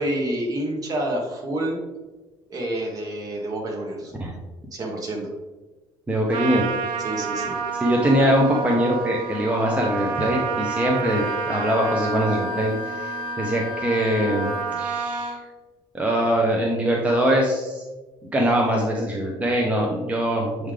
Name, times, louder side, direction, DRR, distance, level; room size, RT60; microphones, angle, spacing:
voice 1, 0.0-1.8 2.5-4.1 4.7-5.3 7.0-7.6, right 1 dB, 40° right, 0 dB, 1.4 m, -28 dB
voice 2, 6.1-6.7 7.8-15.4 15.9-17.8 18.3-20.7, equal, 15° right, -1 dB, 0.8 m, -22 dB
Trumpet, 6.3-15.4, right 5 dB, 60° right, 0.8 m, -29 dB
Wind instrument woodwind instrument, 11.1-14.8, left 5 dB, 60° left, 0.4 m, -35 dB
7.7 x 3.7 x 3.3 m, 1.2 s
cardioid pair, 130°, 10 cm